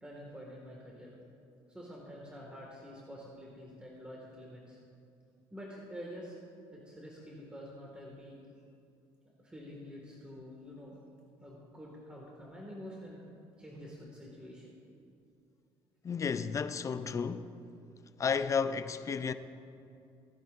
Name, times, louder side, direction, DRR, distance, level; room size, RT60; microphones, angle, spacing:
voice 1, 0.0-1.1 1.7-4.8 5.5-6.4 6.7-8.4 9.4-11.0 11.4-13.2 13.6-14.7, equal, 10° right, 1.8 m, -47 dB
voice 2, 16.0-17.5 18.2-19.3, left 6 dB, 30° left, 0.5 m, -32 dB
16.5 x 10.5 x 2.5 m
cardioid pair, 105°, 11 cm